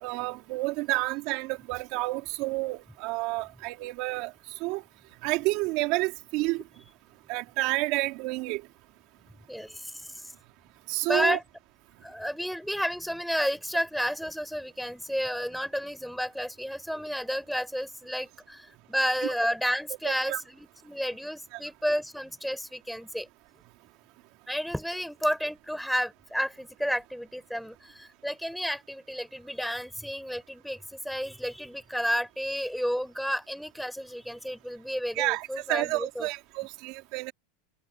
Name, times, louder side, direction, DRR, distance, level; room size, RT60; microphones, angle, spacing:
voice 1, 0.0-4.3 4.6-4.8 5.2-6.6 7.3-8.6 10.9-11.4 20.0-20.4 21.5-21.6 35.1-37.3, right 22 dB, 50° right, 3.1 m, -30 dB
voice 2, 9.5-10.2 11.0-11.4 12.0-23.3 24.5-36.3, equal, ahead, 4.9 m, -31 dB
supercardioid pair, 150°, 0 cm